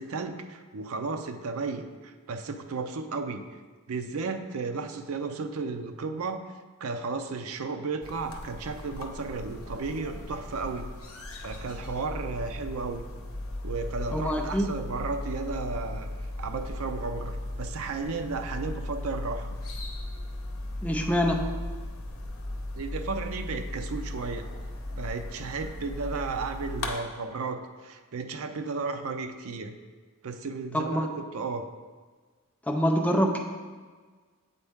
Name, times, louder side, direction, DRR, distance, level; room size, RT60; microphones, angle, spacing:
voice 1, 0.0-3.4 3.9-6.4 6.8-10.9 11.4-13.0 13.6-16.1 16.4-19.5 22.8-24.5 25.0-29.7 30.2-31.7, right 4 dB, 80° right, 7 dB, 0.5 m, -34 dB
sound 1, 8.0-26.9, left 1 dB, 80° left, 0.8 m, -37 dB
voice 2, 14.1-14.7 20.8-21.4 30.7-31.1 32.7-33.4, equal, 5° left, 1 dB, 0.5 m, -25 dB
7.8 x 4.2 x 3.5 m, 1.4 s
head